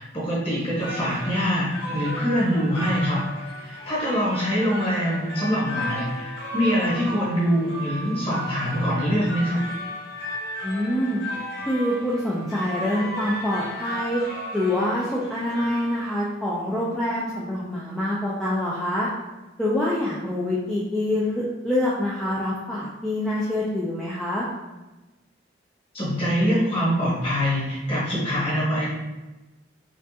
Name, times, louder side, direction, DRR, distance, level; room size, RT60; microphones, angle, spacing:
voice 1, 0.0-9.6 25.9-28.9, equal, 30° left, -7 dB, 1.3 m, -24 dB
sound 1, 0.6-16.5, equal, 65° left, 0.8 m, -35 dB
voice 2, 10.6-11.2 11.7-14.2 14.5-19.1 19.6-24.5, left 1 dB, 5° left, -7 dB, 0.4 m, -26 dB
4.4 x 2.5 x 2.8 m, 1.1 s
head